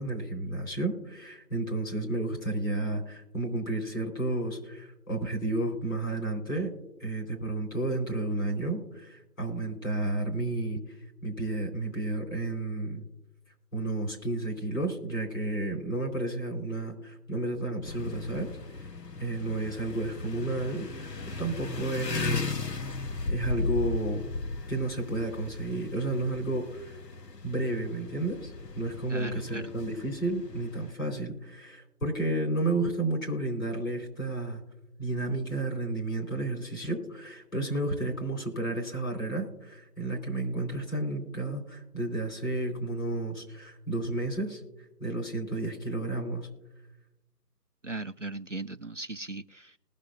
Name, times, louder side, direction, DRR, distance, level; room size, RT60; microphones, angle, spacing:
voice 1, 0.0-6.7 7.0-10.8 11.2-13.0 13.7-18.5 18.8-18.9 19.2-20.9 21.2-22.7 23.3-24.2 24.7-26.9 27.4-34.6 35.0-44.6 45.0-46.5, right 2 dB, 60° left, 0 dB, 4.2 m, -32 dB
sound 1, 17.8-30.9, left 3 dB, 85° left, 1.0 m, -37 dB
voice 2, 29.1-29.7 47.8-49.8, right 2 dB, 55° right, 9 dB, 0.5 m, -38 dB
20.0 x 6.7 x 2.5 m, 0.95 s
figure-of-eight pair, 170°, 48 cm